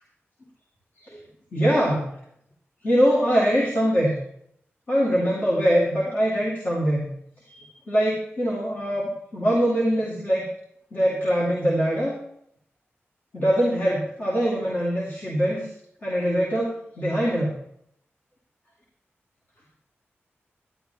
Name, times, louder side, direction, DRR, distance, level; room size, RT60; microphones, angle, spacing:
voice 1, 1.5-2.0 2.8-4.1 4.9-7.1 7.6-10.5 10.9-12.1 13.3-15.7 16.0-17.5, equal, 45° left, -5 dB, 2.5 m, -23 dB
11.5 x 11.0 x 3.5 m, 0.71 s
wide cardioid pair, 150°, 4 cm